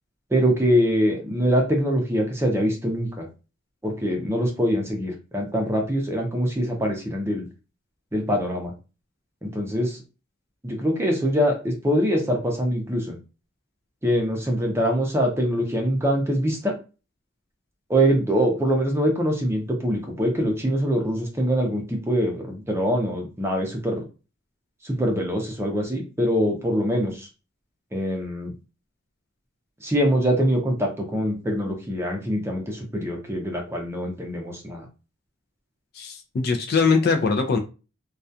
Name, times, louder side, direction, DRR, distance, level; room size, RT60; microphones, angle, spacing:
voice 1, 0.3-3.3 3.8-7.5 8.1-8.7 9.4-10.0 10.6-13.1 14.0-16.7 17.9-24.0 24.8-27.3 27.9-28.5 29.8-34.9, equal, 10° right, 0.5 m, -24 dB
voice 2, 36.0-37.6, left 4 dB, 50° left, 0.3 m, -21 dB
2.3 x 2.2 x 2.6 m
head